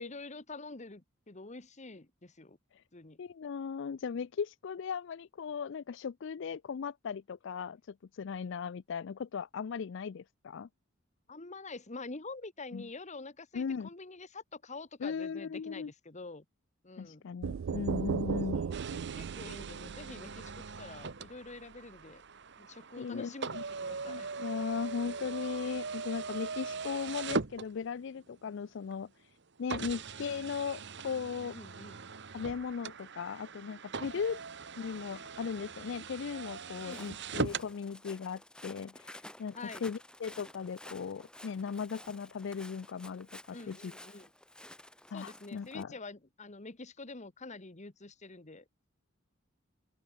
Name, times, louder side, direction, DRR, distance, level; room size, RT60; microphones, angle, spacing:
voice 1, 0.0-2.6 2.9-3.2 11.3-16.4 16.8-17.3 18.5-22.2 22.6-24.3 29.8-30.0 31.5-32.1 36.8-37.1 39.5-39.8 43.5-44.3 45.1-48.9, left 3 dB, 35° left, 1.4 m, -47 dB
voice 2, 3.2-10.7 12.7-12.9 13.5-13.9 15.0-15.9 17.0-18.6 23.0-23.6 24.1-29.3 29.6-31.6 32.3-34.4 34.8-43.9 45.1-45.9, left 6 dB, 65° left, 0.4 m, -38 dB
sound 1, 17.4-21.2, right 6 dB, 80° right, 0.4 m, -36 dB
sound 2, 18.7-28.2 28.9-29.0 29.7-37.7, right 4 dB, 60° right, 1.3 m, -40 dB
Walk footsteps, 36.8-45.8, left 1 dB, 5° left, 2.2 m, -52 dB
open air
head